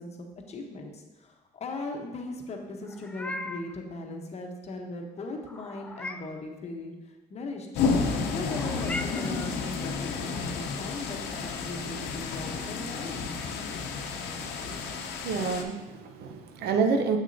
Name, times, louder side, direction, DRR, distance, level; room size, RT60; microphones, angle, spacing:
voice 1, 0.0-7.7 8.3-13.1, left 2 dB, 40° left, 3 dB, 0.9 m, -39 dB
Meow, 2.8-3.8 5.5-6.4 8.5-9.6, left 2 dB, 5° left, 0.3 m, -38 dB
sound 1, 7.7-15.6, left 5 dB, 80° left, 0.8 m, -31 dB
voice 2, 14.4-17.2, right 5 dB, 70° right, 6 dB, 0.7 m, -29 dB
7.4 x 6.2 x 2.7 m, 1.1 s
cardioid pair, 110°, 17 cm